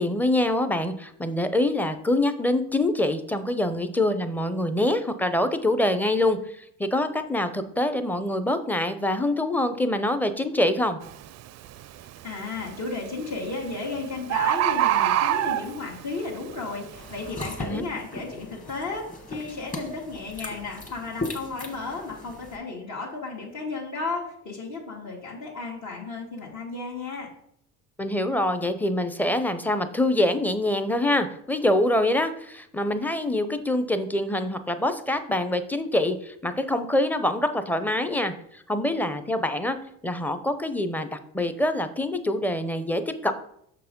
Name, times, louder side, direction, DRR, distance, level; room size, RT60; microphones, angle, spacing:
voice 1, 0.0-11.0 17.6-17.8 28.0-39.8 40.0-43.3, left 1 dB, 5° left, 10 dB, 0.6 m, -25 dB
Bird, 11.0-11.3 11.8-12.3 13.3-13.4 13.7-13.8 14.0-14.1 14.3-16.0 16.6-16.7, right 12 dB, 50° right, 0.4 m, -23 dB
voice 2, 12.2-27.3, left 3 dB, 55° left, -2 dB, 1.9 m, -34 dB
sound 1, 16.9-22.6, left 2 dB, 25° left, 1.5 m, -38 dB
6.4 x 4.7 x 5.2 m, 0.70 s
cardioid pair, 105°, 35 cm